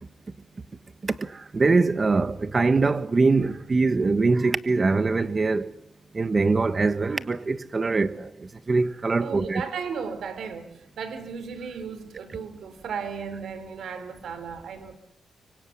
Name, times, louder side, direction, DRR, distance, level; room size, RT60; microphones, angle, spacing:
voice 1, 1.0-5.7 6.1-8.3 8.7-9.6, right 3 dB, 35° right, 1.4 m, -23 dB
voice 2, 9.2-15.0, right 6 dB, 80° right, 3.2 m, -35 dB
25.0 x 24.5 x 7.2 m
cardioid pair, 100°, 0 cm